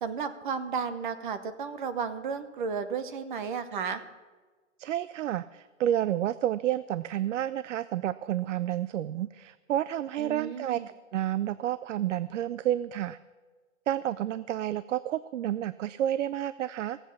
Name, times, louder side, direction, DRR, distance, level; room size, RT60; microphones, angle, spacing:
voice 1, 0.0-4.0 10.2-10.9, right 6 dB, 40° right, 11 dB, 0.9 m, -33 dB
voice 2, 4.8-10.8 11.1-13.2 13.9-17.0, right 12 dB, 65° right, 16 dB, 0.5 m, -30 dB
16.0 x 8.0 x 7.2 m, 1.4 s
hypercardioid pair, 160°, 39 cm